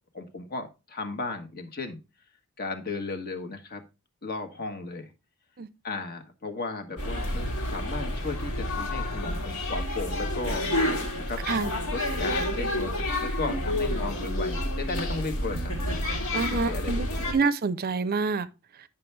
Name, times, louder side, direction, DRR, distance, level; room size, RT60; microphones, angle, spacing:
voice 1, 0.1-2.0 2.6-3.8 4.2-5.1 5.8-10.7 11.3-11.4 11.9-15.8 16.3-17.2, left 3 dB, 45° left, 1.3 m, -35 dB
sound 1, 7.0-17.3, left 1 dB, 70° left, 2.0 m, -29 dB
voice 2, 16.3-18.5, right 4 dB, 45° right, 0.6 m, -27 dB
9.7 x 5.6 x 3.3 m
head